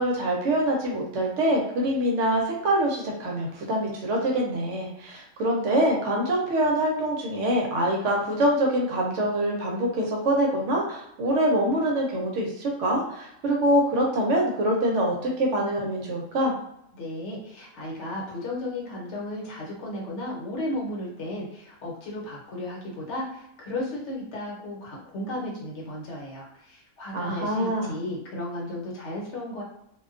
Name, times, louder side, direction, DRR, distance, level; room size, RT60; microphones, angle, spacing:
voice 1, 0.0-16.5 27.1-27.9, right 1 dB, 70° right, -1 dB, 0.9 m, -25 dB
voice 2, 16.9-29.6, left 1 dB, 65° left, -3 dB, 1.0 m, -34 dB
2.4 x 2.2 x 2.4 m, 0.77 s
omnidirectional pair, 1.4 m